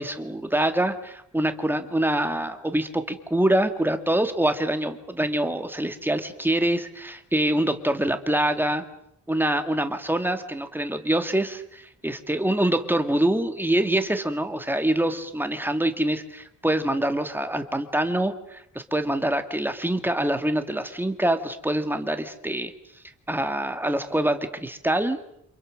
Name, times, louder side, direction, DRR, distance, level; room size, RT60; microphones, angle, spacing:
voice 1, 0.0-8.8 9.3-22.7 23.3-25.2, right 1 dB, 5° right, 7 dB, 2.0 m, -25 dB
29.0 x 27.5 x 6.5 m, 0.73 s
wide cardioid pair, 160°, 30 cm